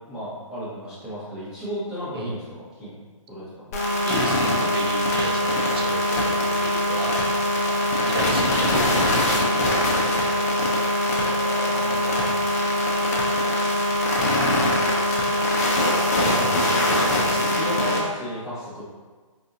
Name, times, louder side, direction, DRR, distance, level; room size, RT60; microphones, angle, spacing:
voice 1, 0.1-2.5 2.7-3.0 3.3-3.4 11.1-12.5 14.4-14.9 16.2-16.6 17.3-18.8, equal, 5° right, -12 dB, 0.8 m, -34 dB
sound 1, 3.7-18.0, left 1 dB, 30° left, 0.5 m, -22 dB
voice 2, 4.0-10.4 11.9-12.2 14.2-15.3 16.2-16.7 17.3-17.4, right 3 dB, 45° right, 1 dB, 0.5 m, -35 dB
4.1 x 2.6 x 2.4 m, 1.4 s
figure-of-eight pair, 145°, 17 cm